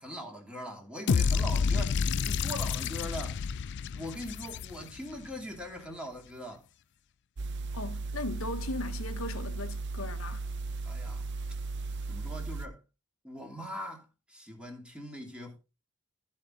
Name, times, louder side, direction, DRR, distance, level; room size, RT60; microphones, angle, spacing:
voice 1, 0.0-3.4 3.9-6.6 10.9-11.3 12.1-12.8 13.2-15.6, equal, 5° right, 2.7 m, -41 dB
sound 1, 1.1-5.2, left 5 dB, 55° left, 0.4 m, -29 dB
sound 2, 7.4-12.7, right 3 dB, 55° right, 0.6 m, -36 dB
voice 2, 7.7-10.4, left 2 dB, 70° left, 1.2 m, -38 dB
14.5 x 5.8 x 3.8 m
head